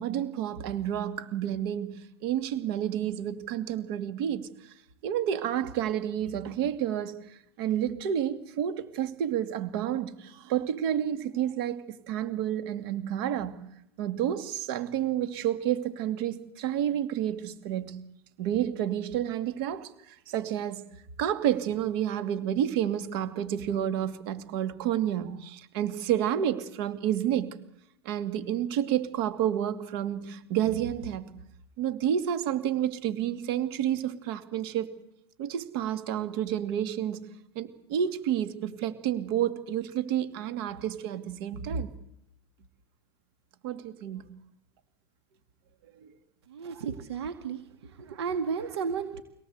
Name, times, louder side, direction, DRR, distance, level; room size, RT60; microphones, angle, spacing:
voice 1, 0.0-4.7 5.0-13.7 14.0-18.1 18.4-20.8 21.2-27.6 28.0-31.3 31.8-35.0 35.4-37.3 37.5-41.9 43.6-44.3 46.0-46.1 46.7-46.8, right 10 dB, 65° right, 2.7 m, -30 dB
voice 2, 46.5-47.6 48.0-49.2, right 6 dB, 85° right, 2.0 m, -33 dB
25.0 x 18.5 x 8.1 m
hypercardioid pair, 110°, 13 cm